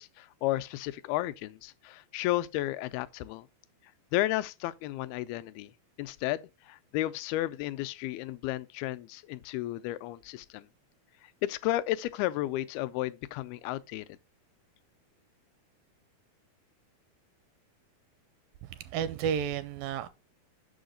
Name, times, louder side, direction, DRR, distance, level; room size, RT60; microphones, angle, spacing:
voice 1, 0.0-3.5 4.1-5.7 6.0-10.7 11.4-14.1, left 15 dB, 85° left, 2.4 m, -33 dB
voice 2, 18.6-20.1, right 8 dB, 80° right, 2.2 m, -32 dB
7.1 x 6.3 x 3.7 m
omnidirectional pair, 4.3 m